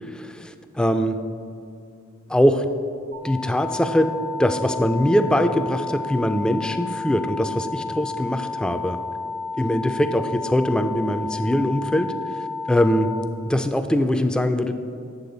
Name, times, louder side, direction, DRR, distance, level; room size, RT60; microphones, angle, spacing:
voice 1, 0.1-1.2 2.3-2.7 3.2-4.1 4.4-9.0 9.6-12.1 12.7-13.1 13.5-14.7, equal, 5° left, 7 dB, 0.3 m, -22 dB
sound 1, 3.1-13.1, left 3 dB, 70° right, 1.7 m, -32 dB
8.4 x 7.0 x 3.9 m, 2.4 s
head